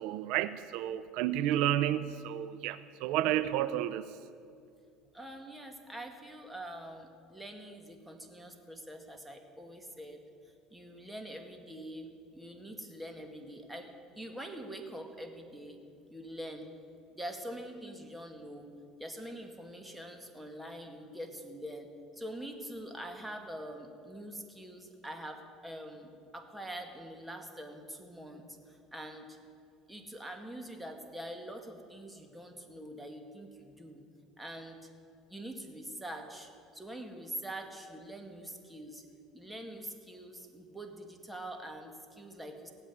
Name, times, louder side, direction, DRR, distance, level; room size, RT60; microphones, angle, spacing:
voice 1, 0.0-4.1, right 12 dB, 75° right, 14 dB, 0.4 m, -31 dB
voice 2, 5.1-15.8 16.1-16.7 17.1-18.7 19.0-29.4 29.9-34.0 34.4-34.8 35.3-39.1 39.3-42.7, right 1 dB, 5° right, 4 dB, 2.0 m, -44 dB
17.0 x 8.0 x 9.7 m, 2.4 s
supercardioid pair, 100°, 0 cm